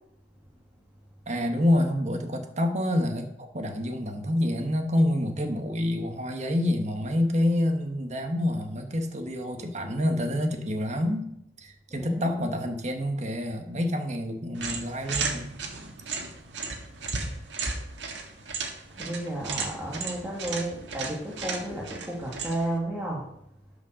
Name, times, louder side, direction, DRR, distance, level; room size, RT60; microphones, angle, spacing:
voice 1, 1.3-11.3 11.6-15.6, left 1 dB, 40° right, 5 dB, 1.2 m, -27 dB
voice 2, 11.9-12.4 18.9-23.2, right 1 dB, 10° right, -4 dB, 2.1 m, -32 dB
sound 1, 14.5-22.8, right 4 dB, 80° right, 1.9 m, -35 dB
12.0 x 5.2 x 6.4 m, 0.76 s
head